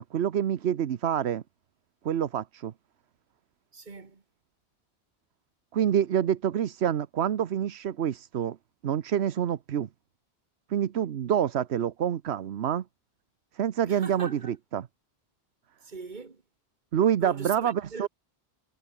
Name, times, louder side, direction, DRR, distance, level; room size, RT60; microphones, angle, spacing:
voice 1, 0.0-1.4 2.0-2.7 5.7-8.6 8.8-9.9 10.7-12.8 13.5-14.9 16.9-18.1, right 9 dB, 85° right, 1.1 m, -27 dB
voice 2, 3.7-4.2 13.8-14.6 15.8-16.4 17.2-18.1, right 4 dB, 45° right, 1.8 m, -41 dB
omnidirectional pair, 1.1 m